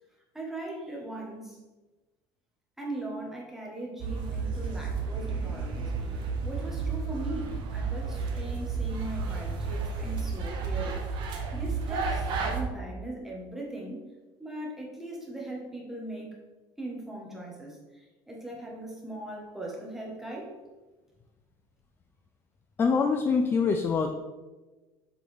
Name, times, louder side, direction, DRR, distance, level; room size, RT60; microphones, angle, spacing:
voice 1, 0.3-1.6 2.8-5.9 6.4-14.0 14.4-16.4 16.8-20.5, right 1 dB, 5° right, -2 dB, 1.3 m, -39 dB
sound 1, 4.0-12.6, right 4 dB, 50° right, 1.0 m, -32 dB
voice 2, 22.8-24.1, left 5 dB, 20° left, 5 dB, 0.4 m, -24 dB
7.4 x 3.9 x 3.5 m, 1.2 s
cardioid pair, 145°, 10 cm